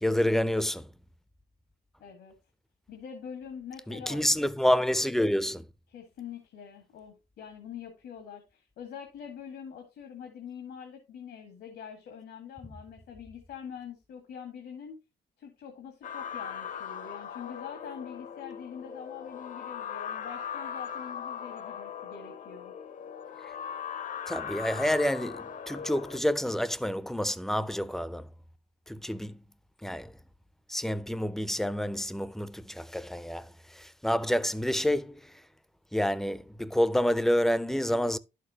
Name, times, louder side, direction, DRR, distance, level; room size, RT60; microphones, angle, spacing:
voice 1, 0.0-0.9 3.9-5.7 24.3-28.3 28.9-29.4 29.8-30.1 30.7-35.4 35.9-38.2, equal, ahead, 0.4 m, -28 dB
voice 2, 2.0-2.4 2.9-4.3 5.9-15.0 15.4-22.7, left 7 dB, 85° left, 1.9 m, -44 dB
sound 1, 16.0-26.2, left 8 dB, 50° left, 0.7 m, -39 dB
11.0 x 6.6 x 2.9 m
cardioid pair, 115°, 17 cm